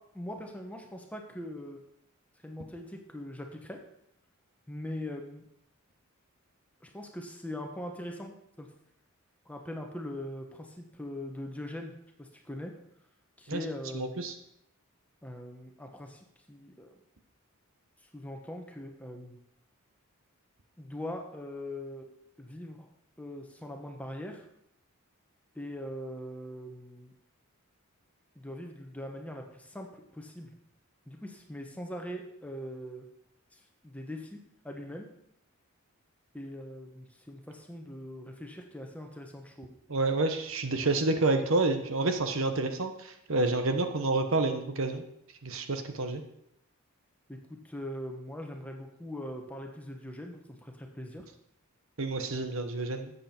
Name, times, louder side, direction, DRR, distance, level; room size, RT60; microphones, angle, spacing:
voice 1, 0.1-1.8 2.4-3.8 4.7-5.4 6.8-8.7 9.4-12.7 13.4-14.1 15.2-17.0 18.1-19.4 20.8-22.1 22.4-22.9 23.2-24.4 25.5-27.1 28.3-30.5 31.1-33.1 33.5-35.1 36.3-39.7 47.3-51.3, left 1 dB, 5° left, 2 dB, 1.2 m, -41 dB
voice 2, 13.9-14.3 39.9-45.0 45.4-46.2 52.0-53.1, right 2 dB, 65° right, 7 dB, 1.1 m, -29 dB
12.5 x 8.4 x 4.4 m, 0.78 s
head